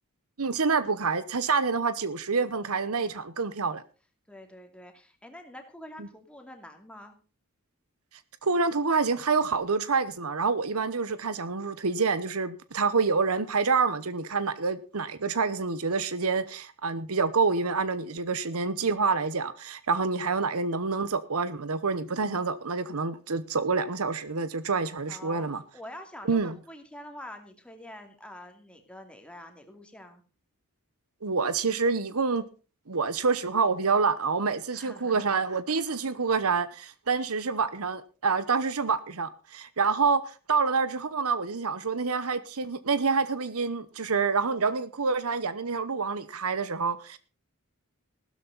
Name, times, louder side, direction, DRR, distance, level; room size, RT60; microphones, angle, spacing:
voice 1, 0.4-3.8 6.0-6.1 8.4-25.6 26.3-26.5 31.2-32.4 32.9-47.2, right 4 dB, 70° right, 1.0 m, -27 dB
voice 2, 4.3-7.2 25.1-25.5 25.7-26.4 26.7-30.2 34.7-35.4 36.2-36.3, left 1 dB, 5° left, 2.5 m, -46 dB
15.5 x 13.0 x 4.1 m
head